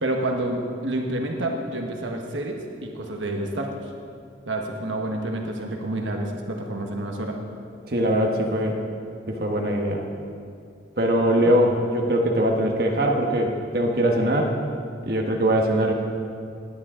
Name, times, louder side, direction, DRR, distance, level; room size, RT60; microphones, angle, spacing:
voice 1, 0.0-3.9 4.5-7.4 11.4-11.5, right 1 dB, 85° right, 2 dB, 1.3 m, -29 dB
voice 2, 7.9-8.8 9.3-10.0 11.0-14.6 15.0-15.9, right 1 dB, 55° right, 1 dB, 1.3 m, -22 dB
19.0 x 10.5 x 3.8 m, 2.3 s
head